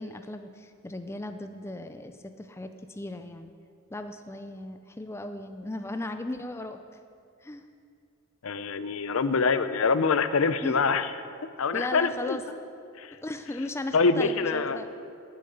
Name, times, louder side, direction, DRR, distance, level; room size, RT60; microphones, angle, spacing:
voice 1, 0.0-3.5 3.9-6.8 7.4-7.6 10.6-10.8 11.7-12.4 13.2-14.9, left 1 dB, 10° left, 7 dB, 0.4 m, -36 dB
voice 2, 8.4-11.1 11.6-12.4 13.0-13.1 13.9-14.8, left 4 dB, 65° left, 12 dB, 0.6 m, -25 dB
9.7 x 7.9 x 9.2 m, 2.3 s
head